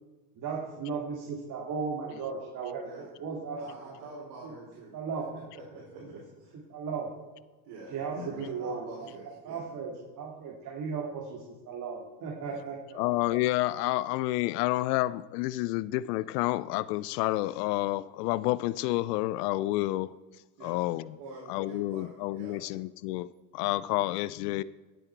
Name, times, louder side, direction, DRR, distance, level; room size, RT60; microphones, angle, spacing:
voice 1, 0.4-3.6 4.4-4.5 4.9-5.3 6.7-7.1 7.9-9.1 9.4-13.0, right 5 dB, 40° right, -1 dB, 2.3 m, -36 dB
voice 2, 2.8-3.1 3.6-5.0 5.3-6.6 7.6-9.7 12.4-12.6 20.6-22.6, right 2 dB, 60° right, -4 dB, 4.1 m, -47 dB
voice 3, 13.0-20.1 20.6-21.1 21.5-23.3 23.5-24.6, left 17 dB, 85° left, 18 dB, 0.6 m, -29 dB
16.5 x 7.9 x 4.5 m, 1.2 s
supercardioid pair, 115°, 46 cm